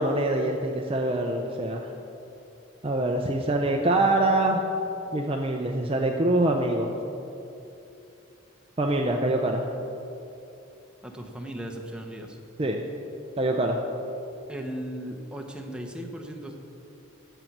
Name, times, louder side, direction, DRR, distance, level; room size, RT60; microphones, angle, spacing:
voice 1, 0.0-1.9 2.8-4.6 5.1-6.9 8.8-9.7 12.6-12.8 13.4-13.8, right 1 dB, 30° right, 2 dB, 0.6 m, -24 dB
voice 2, 11.0-12.4 14.5-16.6, equal, 5° right, 2 dB, 0.9 m, -37 dB
12.0 x 8.0 x 6.0 m, 2.9 s
head